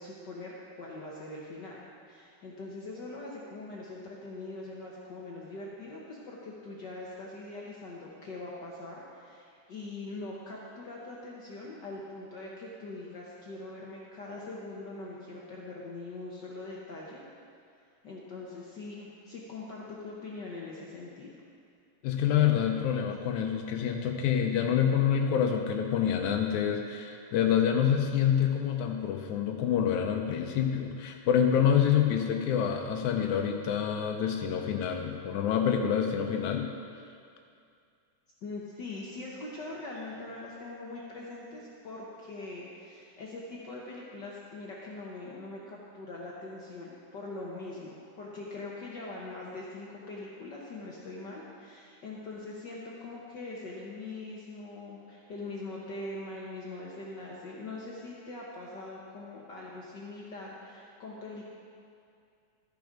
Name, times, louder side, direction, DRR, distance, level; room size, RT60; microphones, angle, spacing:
voice 1, 0.0-1.8 2.1-17.2 18.0-21.4 38.4-61.5, left 2 dB, 60° left, -4 dB, 1.1 m, -42 dB
voice 2, 22.0-36.7, left 8 dB, 85° left, 3 dB, 2.1 m, -27 dB
13.0 x 7.0 x 5.1 m, 2.4 s
omnidirectional pair, 3.4 m